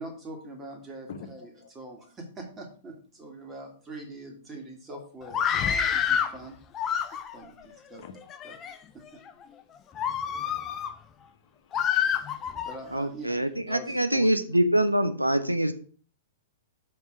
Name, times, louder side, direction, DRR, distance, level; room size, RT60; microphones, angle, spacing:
voice 1, 0.0-1.5 1.7-5.4 5.9-6.6 7.0-8.0 8.4-8.6 8.9-9.2 12.0-12.2 12.6-13.4 13.7-14.3, right 1 dB, 20° right, 2.1 m, -43 dB
voice 2, 1.1-2.0 6.3-6.4 7.6-8.1 10.3-10.8 11.2-12.6, left 6 dB, 50° left, 1.1 m, -49 dB
Screaming, 5.3-6.4 6.7-7.5 8.2-8.7 9.3-9.4 10.0-10.9 11.7-12.8, left 8 dB, 25° left, 0.6 m, -27 dB
voice 3, 12.9-15.7, right 1 dB, 85° right, 0.6 m, -24 dB
5.7 x 5.6 x 5.9 m
figure-of-eight pair, 105°, 0 cm